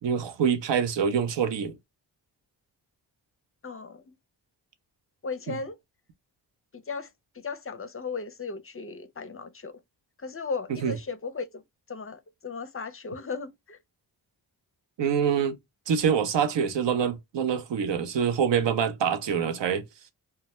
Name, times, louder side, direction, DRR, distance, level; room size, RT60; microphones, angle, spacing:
voice 1, 0.0-1.7 5.5-5.6 10.8-10.9 15.0-15.6 15.9-19.8, right 7 dB, 70° right, 0.7 m, -25 dB
voice 2, 3.6-4.2 5.2-5.8 6.7-9.8 10.2-11.6 11.9-13.8, left 4 dB, 30° left, 0.5 m, -36 dB
2.2 x 2.1 x 2.8 m
cardioid pair, 40°, 45 cm